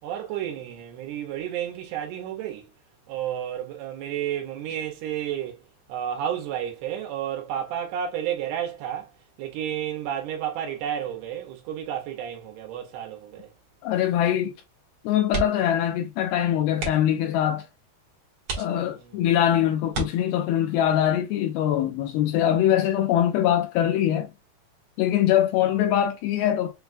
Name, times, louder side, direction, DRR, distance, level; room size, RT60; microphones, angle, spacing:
voice 1, 0.0-2.7 3.1-5.6 5.9-9.1 9.4-13.5 18.8-19.2, right 10 dB, 80° right, 2.9 m, -31 dB
voice 2, 13.8-14.6 15.0-17.7 18.5-24.3 25.0-26.7, left 11 dB, 80° left, 2.3 m, -23 dB
sound 1, 15.3-15.8 16.1-16.3 16.7-17.2 17.8-17.9 18.4-19.2 19.9-20.7 22.2-22.5 22.9-23.0, right 4 dB, 65° right, 1.3 m, -33 dB
6.8 x 2.3 x 2.5 m
omnidirectional pair, 4.7 m